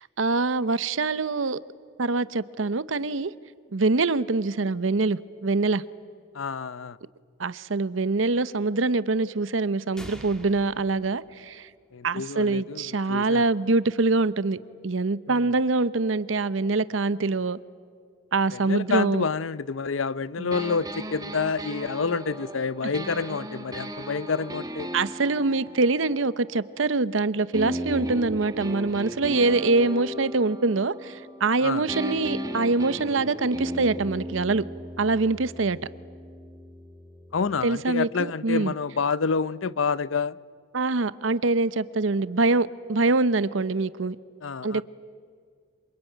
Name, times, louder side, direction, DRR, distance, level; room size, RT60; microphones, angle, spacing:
voice 1, 0.2-1.6 2.0-3.3 3.7-5.8 7.4-11.7 12.0-14.6 14.8-17.6 18.3-19.3 20.4-20.5 24.9-34.6 35.0-35.8 37.6-38.7 40.7-44.2 44.6-44.8, right 3 dB, 80° right, 0.8 m, -24 dB
voice 2, 6.3-7.0 11.9-13.5 15.3-15.5 18.5-24.9 31.6-31.8 37.3-40.4 44.4-44.8, left 5 dB, 80° left, 0.6 m, -28 dB
sound 1, 10.0-11.9, equal, 5° left, 2.2 m, -45 dB
sound 2, 20.5-27.0 27.5-31.6 31.9-37.6, equal, 20° right, 1.4 m, -36 dB
26.5 x 24.5 x 9.1 m
head